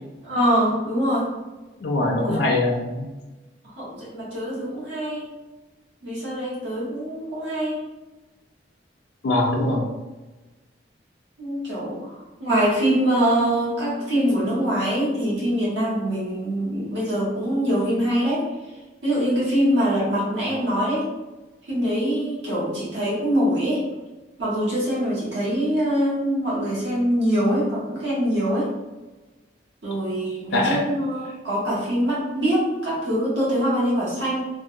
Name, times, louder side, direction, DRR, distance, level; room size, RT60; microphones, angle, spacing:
voice 1, 0.2-1.3 2.2-2.4 3.8-5.3 6.0-7.8 11.4-12.0 12.4-18.4 19.0-21.1 21.7-23.8 24.4-28.7 29.8-34.5, equal, 90° right, -8 dB, 1.2 m, -23 dB
voice 2, 1.8-3.1 9.2-9.9 30.5-30.8, left 2 dB, 70° left, -1 dB, 0.4 m, -22 dB
3.3 x 2.2 x 2.6 m, 1.2 s
head